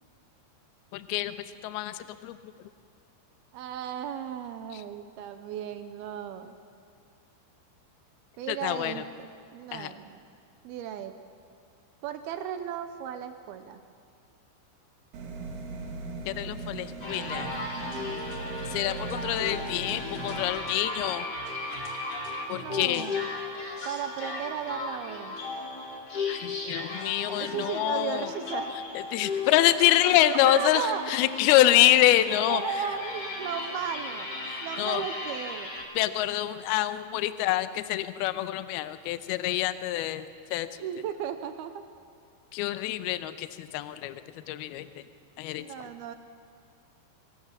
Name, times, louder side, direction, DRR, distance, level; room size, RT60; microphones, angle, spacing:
voice 1, 0.9-1.4 1.6-2.4 4.7-4.8 8.5-8.9 9.7-9.9 16.3-17.5 18.7-21.3 22.5-23.1 26.3-28.3 29.1-32.6 34.5-35.0 36.0-40.3 40.5-40.7 42.5-44.2 44.5-44.9 45.4-45.7, left 14 dB, 80° left, 12 dB, 2.3 m, -26 dB
voice 2, 3.5-6.5 8.4-10.2 10.6-11.1 12.0-13.8 17.8-18.2 22.5-23.3 23.9-25.4 27.4-28.7 30.2-31.0 32.5-34.3 34.6-35.7 40.8-41.8 45.6-46.1, right 9 dB, 80° right, 8 dB, 2.3 m, -35 dB
sound 1, 15.1-20.5, right 3 dB, 55° right, 2.9 m, -38 dB
sound 2, 17.0-35.9, left 3 dB, 30° left, 2.1 m, -36 dB
25.0 x 18.5 x 7.4 m, 2.4 s
omnidirectional pair, 5.4 m